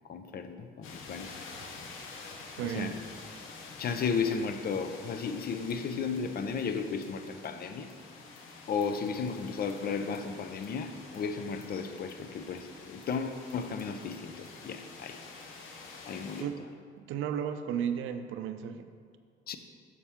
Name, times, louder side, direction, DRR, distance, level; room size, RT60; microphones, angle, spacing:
voice 1, 0.1-1.3 2.6-3.0 3.8-7.9 8.7-15.2 16.0-16.5 19.5-19.6, left 5 dB, 50° left, 9 dB, 0.6 m, -34 dB
sound 1, 0.8-16.4, left 4 dB, 90° left, 0.8 m, -48 dB
voice 2, 2.5-3.0 16.4-16.6 17.0-18.9, right 8 dB, 85° right, 9 dB, 0.4 m, -34 dB
6.9 x 6.7 x 3.6 m, 2.1 s
cardioid pair, 90°, 20 cm